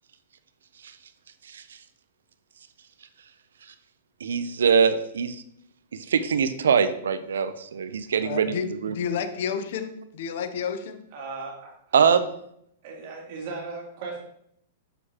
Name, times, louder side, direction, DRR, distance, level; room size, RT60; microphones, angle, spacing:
voice 1, 4.2-5.4 5.9-8.9 11.9-12.3, right 6 dB, 80° right, 12 dB, 0.5 m, -23 dB
voice 2, 8.2-11.0, left 7 dB, 65° left, 10 dB, 0.6 m, -31 dB
voice 3, 11.1-11.7 12.8-14.2, right 4 dB, 55° right, -2 dB, 2.6 m, -36 dB
6.8 x 6.4 x 2.9 m, 0.73 s
hypercardioid pair, 120°, 0 cm